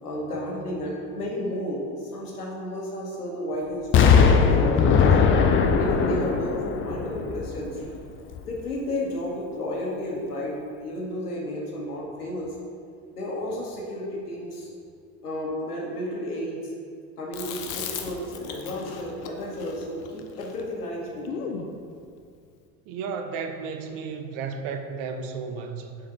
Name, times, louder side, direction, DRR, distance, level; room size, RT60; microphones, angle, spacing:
voice 1, 0.0-5.2 5.7-7.9 8.4-12.5 13.1-14.7 15.2-16.7 17.2-21.5, left 1 dB, 85° left, -3 dB, 1.3 m, -32 dB
Explosion, 3.9-7.9 8.3-8.4, left 6 dB, 30° left, 0.5 m, -19 dB
Chewing mastication, 17.3-21.7, left 7 dB, 60° left, 0.8 m, -37 dB
voice 2, 22.9-26.0, right 5 dB, 50° right, 7 dB, 0.7 m, -33 dB
6.9 x 4.8 x 3.6 m, 2.3 s
figure-of-eight pair, 70°, 45 cm